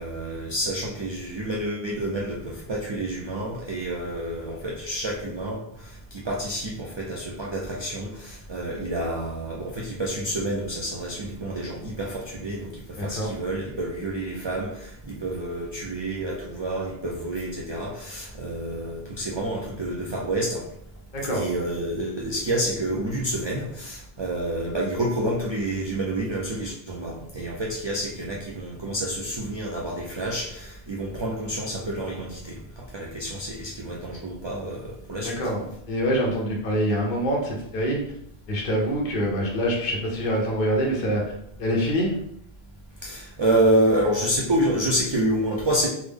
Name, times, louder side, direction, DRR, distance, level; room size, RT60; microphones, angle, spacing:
voice 1, 0.0-5.6 6.1-12.7 13.0-20.6 21.3-32.5 32.9-35.4 43.0-45.9, right 1 dB, 45° right, -3 dB, 0.3 m, -28 dB
voice 2, 13.0-13.3 21.1-21.5 35.2-38.0 38.5-41.2 41.6-42.1, equal, 50° left, -1 dB, 0.8 m, -25 dB
3.4 x 2.0 x 3.4 m, 0.75 s
omnidirectional pair, 1.1 m